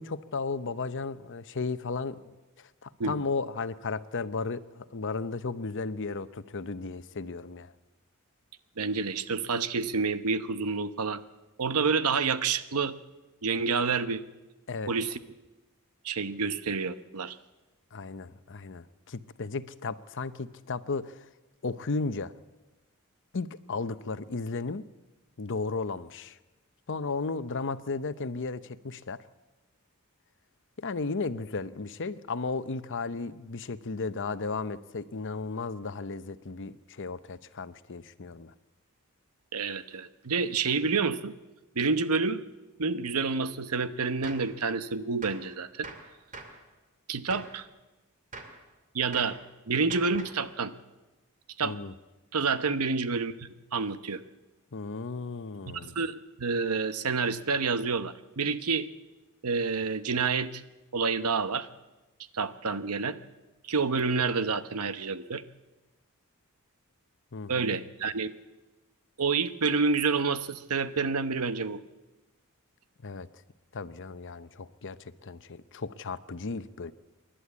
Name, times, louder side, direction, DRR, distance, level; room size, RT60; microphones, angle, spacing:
voice 1, 0.0-2.2 2.8-7.7 14.7-14.9 17.9-21.2 21.6-22.3 23.3-24.9 25.4-26.4 26.9-29.2 30.8-38.5 51.6-51.9 54.7-55.9 67.3-67.7 73.0-73.3 73.7-75.0 75.2-76.9, left 4 dB, 60° left, 13 dB, 0.8 m, -34 dB
voice 2, 8.8-11.2 11.6-12.9 13.4-14.2 14.9-15.2 16.0-17.4 39.5-41.3 41.8-42.4 42.8-45.9 47.1-47.7 48.9-49.4 49.7-50.7 51.6-51.8 52.3-54.2 55.7-58.9 59.4-60.6 60.9-61.7 62.3-63.2 63.7-65.4 67.5-68.3 69.2-71.8, right 4 dB, 85° right, 12 dB, 1.0 m, -28 dB
Gunshot gunfire, 44.2-44.5 45.2-45.5 45.8-46.6 47.3-47.6 48.3-48.6 49.1-49.4 49.9-50.4, right 3 dB, 35° right, 2.4 m, -44 dB
27.5 x 11.5 x 8.5 m, 1.1 s
head